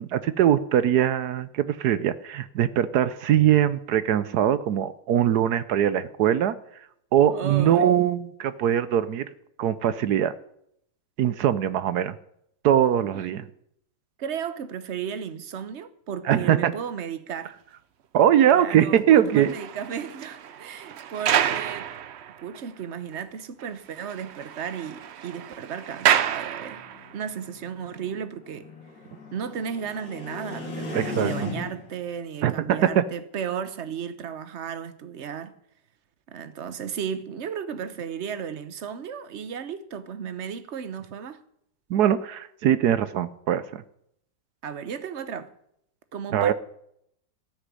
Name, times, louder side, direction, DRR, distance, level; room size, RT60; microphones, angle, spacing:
voice 1, 0.0-6.6 7.1-9.3 9.6-10.3 11.2-12.1 12.6-13.4 16.3-16.7 18.1-19.5 30.9-31.5 32.4-33.0 41.9-43.8 46.3-46.5, right 10 dB, 65° right, 1.1 m, -22 dB
voice 2, 7.3-7.9 13.1-13.4 14.2-17.5 18.5-21.9 22.4-26.8 27.1-28.7 29.3-35.5 36.3-41.4 44.6-45.5 46.1-46.5, right 7 dB, 45° right, 1.0 m, -34 dB
sound 1, 19.1-22.8 23.1-23.2 23.6-23.7 24.0-27.2 27.9-28.1, right 9 dB, 90° right, 0.5 m, -29 dB
sound 2, 26.5-32.0, left 3 dB, 70° left, 3.3 m, -37 dB
13.5 x 6.5 x 9.8 m
omnidirectional pair, 2.0 m